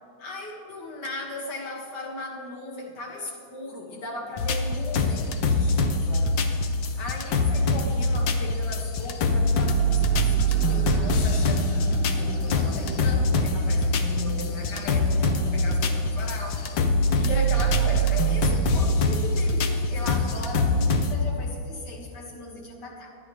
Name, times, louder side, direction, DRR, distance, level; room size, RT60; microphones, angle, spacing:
voice 1, 0.2-6.4 6.9-11.9 12.1-16.8 17.2-23.1, left 2 dB, 40° left, -1 dB, 2.1 m, -37 dB
sound 1, 4.4-21.2, left 1 dB, 85° left, 1.0 m, -23 dB
sound 2, 9.5-16.3, right 2 dB, 55° right, 2.3 m, -39 dB
24.5 x 10.0 x 3.3 m, 2.6 s
omnidirectional pair, 3.3 m